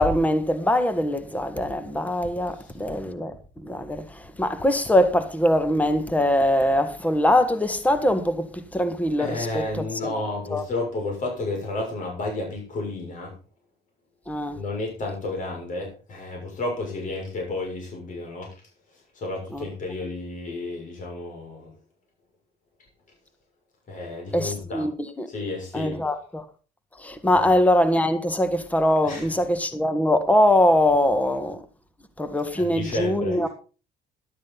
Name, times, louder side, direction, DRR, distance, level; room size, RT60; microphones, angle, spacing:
voice 1, 0.0-10.2 10.5-10.6 14.3-14.6 19.5-19.6 24.3-24.9 25.2-25.3 25.7-26.4 27.0-31.6 32.2-33.5, left 1 dB, 10° left, 1.7 m, -22 dB
voice 2, 9.2-13.3 14.5-18.5 19.1-21.7 23.9-24.8 25.3-26.0 27.3-27.4 29.0-29.3 32.6-33.5, left 2 dB, 50° left, 6.5 m, -31 dB
13.0 x 12.0 x 4.0 m
cardioid pair, 110°, 17 cm